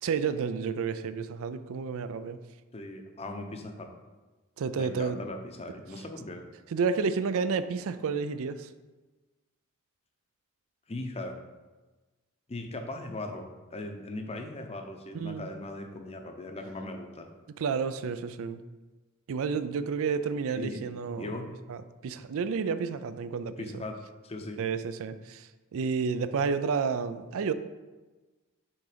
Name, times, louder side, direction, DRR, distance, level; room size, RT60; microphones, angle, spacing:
voice 1, 0.0-2.4 4.6-5.2 6.7-8.7 15.1-15.5 17.6-18.6 19.3-21.3 21.7-23.8 24.6-27.5, right 5 dB, 65° right, 12 dB, 0.4 m, -31 dB
voice 2, 2.7-3.9 4.8-6.4 10.9-11.4 12.5-17.3 20.6-21.5 23.6-24.0 24.2-24.6, left 2 dB, 30° left, 5 dB, 0.7 m, -39 dB
5.9 x 3.8 x 5.0 m, 1.2 s
head